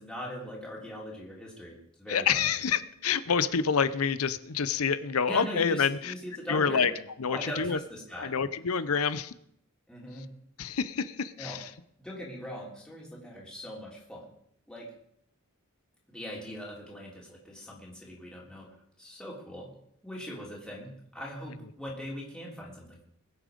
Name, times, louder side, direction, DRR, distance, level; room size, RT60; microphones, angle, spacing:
voice 1, 0.0-2.5 5.3-6.9 7.3-8.3 8.9-9.1 9.9-10.3 11.4-11.6 12.0-14.3 14.7-14.9 16.1-18.7 19.0-19.7 20.0-23.0, equal, 5° left, -5 dB, 3.4 m, -41 dB
voice 2, 2.1-6.1 6.5-6.9 7.2-7.8 8.2-9.3 10.6-11.7, left 6 dB, 80° left, 15 dB, 0.7 m, -27 dB
21.5 x 7.6 x 5.2 m, 0.71 s
head